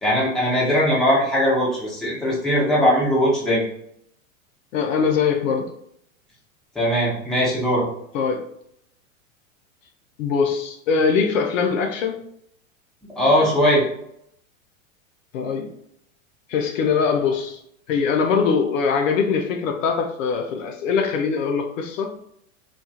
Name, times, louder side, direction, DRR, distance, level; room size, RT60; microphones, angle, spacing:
voice 1, 0.0-3.7 6.7-7.9 13.2-13.8, equal, ahead, -7 dB, 0.9 m, -20 dB
voice 2, 4.7-5.7 8.1-8.5 10.2-12.2 15.3-15.7 16.5-17.6 17.9-22.2, left 5 dB, 65° left, 4 dB, 0.5 m, -22 dB
2.3 x 2.3 x 2.7 m, 0.73 s
hypercardioid pair, 105°, 41 cm